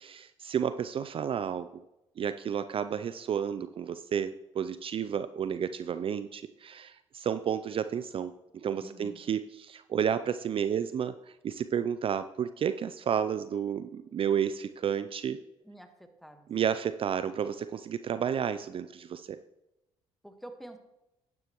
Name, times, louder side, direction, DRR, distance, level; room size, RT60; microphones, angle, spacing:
voice 1, 0.0-1.8 2.2-15.4 16.5-19.4, right 8 dB, 45° right, 12 dB, 0.4 m, -31 dB
voice 2, 8.8-9.2 15.6-16.5 20.2-20.8, right 1 dB, ahead, 7 dB, 1.4 m, -48 dB
11.0 x 9.7 x 3.0 m, 0.92 s
supercardioid pair, 60°, 13 cm